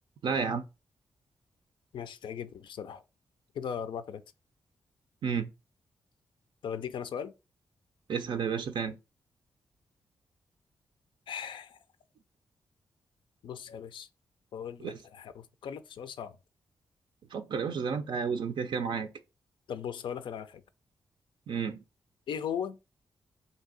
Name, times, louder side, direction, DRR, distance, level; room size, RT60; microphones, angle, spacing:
voice 1, 0.2-0.6 5.2-5.5 8.1-9.0 14.8-15.0 17.3-19.1 21.5-21.8, right 6 dB, 65° right, 0.4 m, -31 dB
voice 2, 1.9-3.0 3.5-4.2 6.6-7.3 11.3-11.8 13.4-14.1 14.5-16.4 19.7-20.6 22.3-22.8, left 8 dB, 70° left, 0.4 m, -38 dB
2.8 x 2.7 x 3.8 m
supercardioid pair, 50°, 9 cm